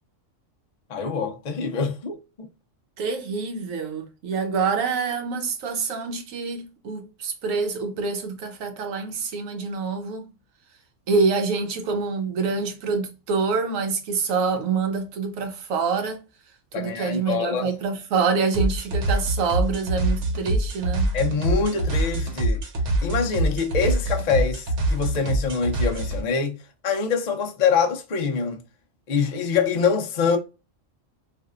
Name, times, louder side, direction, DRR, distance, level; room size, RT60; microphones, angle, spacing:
voice 1, 0.9-2.5 16.7-17.7 21.1-22.6 23.0-26.6 26.8-28.6 29.1-30.4, left 5 dB, 55° left, 0.4 m, -25 dB
voice 2, 3.0-10.3 11.1-16.2 16.7-21.1, right 5 dB, 90° right, 1.1 m, -26 dB
sound 1, 18.5-26.2, right 1 dB, 65° right, 1.1 m, -25 dB
3.4 x 2.5 x 2.3 m
omnidirectional pair, 1.3 m